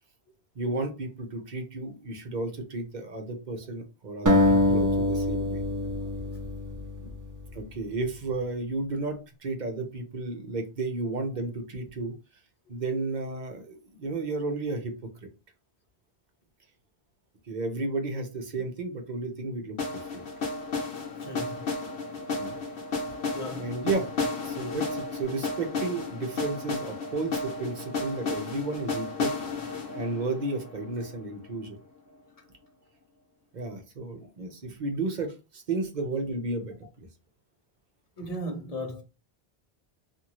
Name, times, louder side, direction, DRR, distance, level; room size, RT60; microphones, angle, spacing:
voice 1, 0.5-5.6 7.5-12.1 12.7-15.3 17.5-20.2 22.3-22.6 23.6-24.1 24.4-29.4 29.9-31.8 33.5-37.1, right 3 dB, 50° right, 0.8 m, -33 dB
sound 1, 4.3-7.5, left 1 dB, 30° right, 0.4 m, -24 dB
sound 2, 19.8-31.7, left 3 dB, 80° left, 1.1 m, -33 dB
voice 2, 21.2-21.5 23.3-23.7 38.2-39.0, equal, 40° left, 0.9 m, -35 dB
2.6 x 2.6 x 2.9 m
omnidirectional pair, 1.1 m